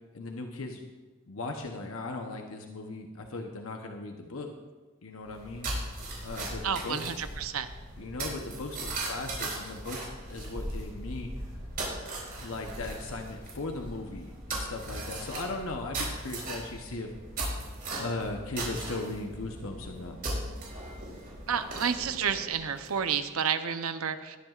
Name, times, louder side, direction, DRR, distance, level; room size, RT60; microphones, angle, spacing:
voice 1, 0.1-0.8 1.3-4.5 5.0-5.7 6.2-7.3 8.0-11.3 12.4-17.1 18.0-20.2, left 2 dB, 75° left, 3 dB, 0.9 m, -38 dB
sound 1, 5.3-23.2, right 2 dB, 45° right, 4.4 m, -38 dB
voice 2, 6.6-7.7 21.5-24.4, right 7 dB, 85° right, 9 dB, 0.7 m, -30 dB
19.5 x 10.5 x 2.5 m, 1.3 s
head